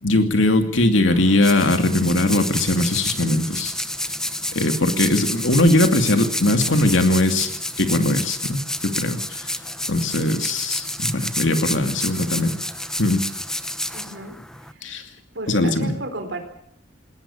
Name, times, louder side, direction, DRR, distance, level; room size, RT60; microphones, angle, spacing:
voice 1, 0.0-3.7 4.5-9.5 9.9-12.5 13.0-13.2 14.8-15.0 15.5-16.0, left 1 dB, 70° left, 6 dB, 2.5 m, -20 dB
sound 1, 1.1-14.7, left 1 dB, 5° left, 0.9 m, -29 dB
voice 2, 13.9-14.4 14.7-14.8 15.3-16.4, right 2 dB, 65° right, 7 dB, 4.1 m, -33 dB
20.5 x 19.0 x 7.2 m, 0.71 s
head